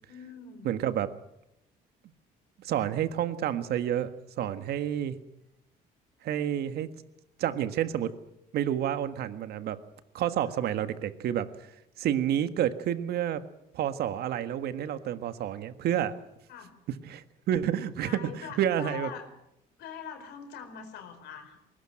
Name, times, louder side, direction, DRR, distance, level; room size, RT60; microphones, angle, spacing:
voice 1, 0.1-0.7 10.5-10.6 16.5-16.7 18.0-19.3 19.8-21.6, left 8 dB, 80° left, 6 dB, 4.7 m, -43 dB
voice 2, 0.6-1.1 2.6-5.2 6.2-6.9 7.4-8.1 8.5-9.8 10.1-11.7 12.0-13.4 13.7-16.2 17.0-19.1, right 10 dB, 70° right, 11 dB, 1.6 m, -29 dB
21.0 x 19.0 x 9.0 m, 0.84 s
cardioid pair, 110°, 17 cm